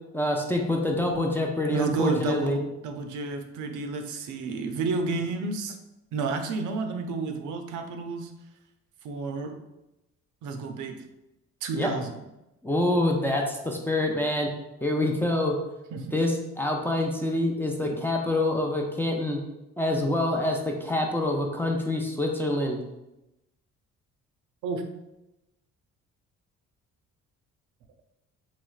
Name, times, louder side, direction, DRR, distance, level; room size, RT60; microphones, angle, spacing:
voice 1, 0.1-2.6 11.7-11.9 12.6-14.5 14.8-15.6 16.1-16.3 16.6-19.4 19.8-22.8, left 1 dB, 5° left, 1 dB, 0.4 m, -26 dB
voice 2, 1.7-5.8 6.1-8.3 9.0-9.5 10.4-11.1 11.6-12.2 15.9-16.2 24.6-24.8, right 4 dB, 85° right, 5 dB, 0.5 m, -31 dB
3.2 x 3.0 x 2.4 m, 0.93 s
cardioid pair, 90°, 30 cm